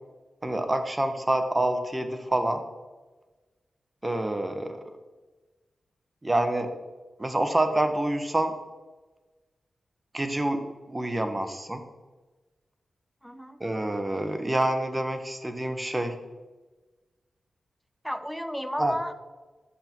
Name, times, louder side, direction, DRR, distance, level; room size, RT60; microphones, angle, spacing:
voice 1, 0.4-2.6 4.0-4.8 6.2-6.7 7.2-8.5 10.1-11.8 13.6-16.2 18.8-18.9, right 1 dB, 20° right, 7 dB, 1.4 m, -27 dB
voice 2, 13.2-13.6 18.0-19.1, equal, ahead, 9 dB, 0.8 m, -33 dB
11.5 x 7.8 x 4.6 m, 1.2 s
cardioid pair, 65°, 0 cm